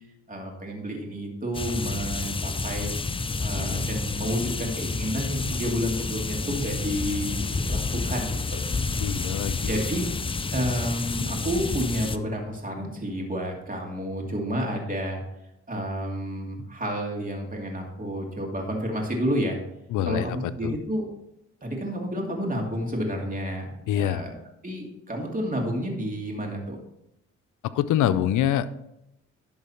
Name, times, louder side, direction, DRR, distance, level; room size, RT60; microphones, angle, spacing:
voice 1, 0.3-2.9 3.4-8.6 9.7-10.1 10.5-15.2 15.7-19.6 20.1-21.0 21.6-24.3 24.6-26.8, equal, 30° right, 0 dB, 2.5 m, -30 dB
sound 1, 1.5-12.2, left 3 dB, 20° left, 0.5 m, -29 dB
voice 2, 9.0-9.7 19.9-20.7 23.9-24.2 27.7-28.7, left 11 dB, 85° left, 13 dB, 0.5 m, -25 dB
11.5 x 3.9 x 4.3 m, 0.82 s
cardioid pair, 65°, 30 cm